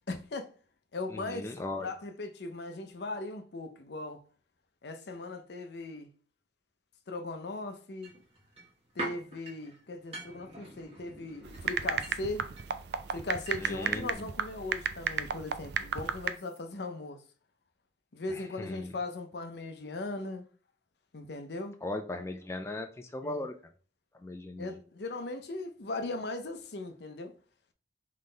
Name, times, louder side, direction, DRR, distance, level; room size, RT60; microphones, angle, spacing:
voice 1, 0.1-0.5 0.9-4.2 4.8-6.1 7.1-8.1 8.9-12.4 13.1-17.2 18.1-20.5 21.1-21.8 23.2-23.5 24.6-27.3, left 2 dB, 65° left, 0.7 m, -38 dB
voice 2, 1.1-1.9 13.6-14.1 18.3-18.9 21.8-23.5 24.2-24.8, left 2 dB, 15° left, 0.3 m, -38 dB
sound 1, 8.0-13.8 14.1-14.2, right 1 dB, 35° right, 1.4 m, -45 dB
sound 2, 11.4-16.3, right 7 dB, 65° right, 0.4 m, -34 dB
3.8 x 3.3 x 3.8 m
head